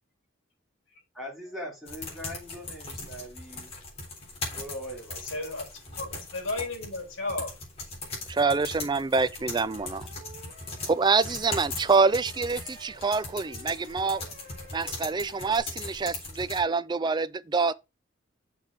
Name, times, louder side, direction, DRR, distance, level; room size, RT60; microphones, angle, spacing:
voice 1, 1.1-3.7 4.5-5.3, equal, ahead, 3.1 m, -41 dB
sound 1, 1.9-16.6, left 3 dB, 30° left, 3.6 m, -39 dB
voice 2, 5.2-5.7 6.0-7.5, left 2 dB, 75° left, 3.1 m, -33 dB
voice 3, 8.3-10.1 10.9-14.2 14.7-17.7, right 4 dB, 20° right, 0.4 m, -26 dB
sound 2, 9.4-15.6, equal, 40° right, 2.8 m, -51 dB
6.7 x 4.8 x 4.5 m
head